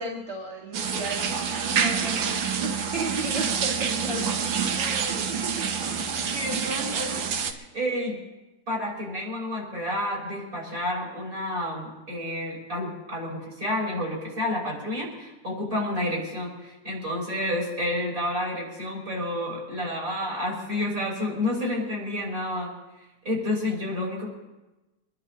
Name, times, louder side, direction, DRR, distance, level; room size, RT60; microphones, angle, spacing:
voice 1, 0.0-5.7, right 2 dB, 15° right, -6 dB, 2.2 m, -35 dB
sound 1, 0.7-7.5, right 6 dB, 70° right, 1.7 m, -27 dB
voice 2, 6.3-7.2 7.5-8.2 8.7-22.7 23.2-24.3, left 1 dB, 45° right, -2 dB, 6.1 m, -30 dB
24.5 x 11.5 x 4.1 m, 1.0 s
omnidirectional pair, 2.2 m